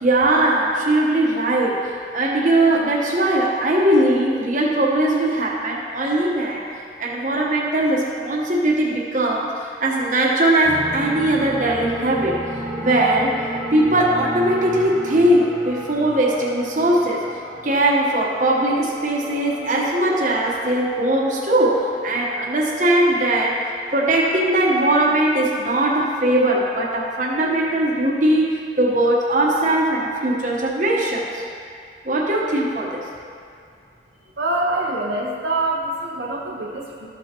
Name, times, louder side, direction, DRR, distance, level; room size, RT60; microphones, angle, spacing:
voice 1, 0.0-6.6 7.0-9.5 9.8-12.4 12.8-13.4 13.7-17.2 17.6-23.6 23.9-31.4 32.0-33.0, right 1 dB, 40° right, -3 dB, 1.1 m, -20 dB
sound 1, 10.6-25.1, right 1 dB, 10° left, 1.1 m, -35 dB
voice 2, 34.4-37.1, right 2 dB, 70° right, -3 dB, 0.9 m, -25 dB
13.0 x 6.0 x 3.0 m, 2.3 s
head